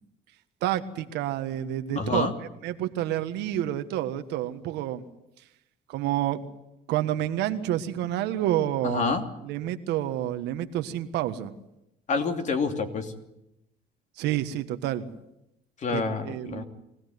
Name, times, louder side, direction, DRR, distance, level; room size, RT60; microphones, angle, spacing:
voice 1, 0.6-2.3 2.6-5.0 5.9-6.4 6.9-9.1 9.4-11.5 14.2-15.1 15.9-16.6, right 12 dB, 90° right, 9 dB, 1.5 m, -29 dB
voice 2, 1.9-2.3 8.8-9.2 12.1-13.1 15.8-16.7, left 4 dB, 45° left, 6 dB, 2.9 m, -27 dB
23.0 x 17.0 x 9.4 m, 0.87 s
cardioid pair, 110°, 17 cm